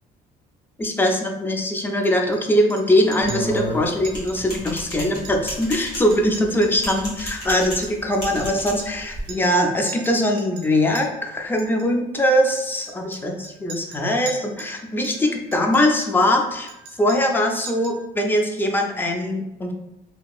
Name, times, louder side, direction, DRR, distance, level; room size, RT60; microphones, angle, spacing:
voice 1, 0.8-16.7 17.0-19.7, left 1 dB, 10° left, 2 dB, 0.4 m, -21 dB
Chink clink, 1.8-2.4 2.7-2.9 3.1-3.7 4.0-4.4 4.7-4.8 5.1-5.8 6.1-9.0 9.3-9.6 9.9-11.0 11.6-11.9 12.6-14.8 15.0-16.3 16.7-17.4 17.7-18.0, right 4 dB, 90° right, 0.5 m, -41 dB
sound 1, 3.2-9.3, right 1 dB, 85° left, 1.2 m, -32 dB
2.7 x 2.5 x 2.3 m, 0.90 s
cardioid pair, 110°, 17 cm